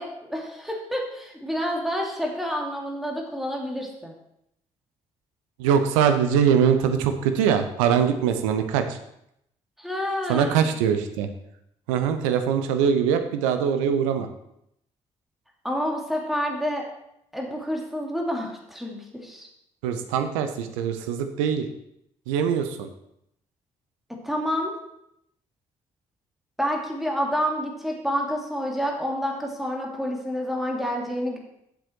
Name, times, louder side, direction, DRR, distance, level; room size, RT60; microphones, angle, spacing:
voice 1, 0.0-4.1 9.8-10.7 15.6-16.8 17.3-19.5 24.2-24.7 26.6-31.4, equal, ahead, -1 dB, 2.6 m, -28 dB
voice 2, 5.6-9.0 10.3-11.3 11.9-14.3 19.8-21.7 22.3-22.9, right 7 dB, 75° right, 8 dB, 0.8 m, -22 dB
9.4 x 7.6 x 4.6 m, 0.78 s
figure-of-eight pair, 40°, 17 cm